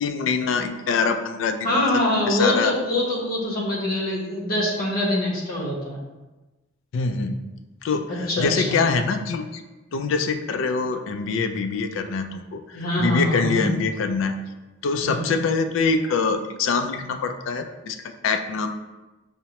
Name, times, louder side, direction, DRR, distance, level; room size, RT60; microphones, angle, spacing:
voice 1, 0.0-1.6 2.3-2.7 6.9-7.4 7.8-9.6 9.9-14.4 14.8-18.7, left 4 dB, 65° left, 8 dB, 0.3 m, -24 dB
voice 2, 1.6-6.0 8.3-8.8 12.7-13.6 15.0-15.2, left 1 dB, 45° left, -4 dB, 1.0 m, -24 dB
5.6 x 2.1 x 2.8 m, 1.1 s
head